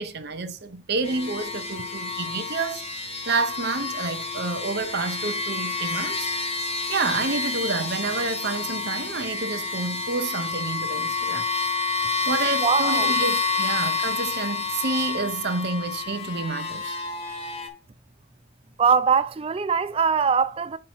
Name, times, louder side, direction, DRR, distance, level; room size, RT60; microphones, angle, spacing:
voice 1, 0.0-2.8 3.3-6.3 6.9-11.5 12.3-17.0, right 3 dB, 50° right, 0.7 m, -29 dB
sound 1, 1.0-17.7, left 4 dB, 30° left, 1.2 m, -29 dB
voice 2, 12.6-13.1 18.8-20.8, right 6 dB, 30° right, 0.4 m, -22 dB
7.4 x 3.0 x 5.8 m
head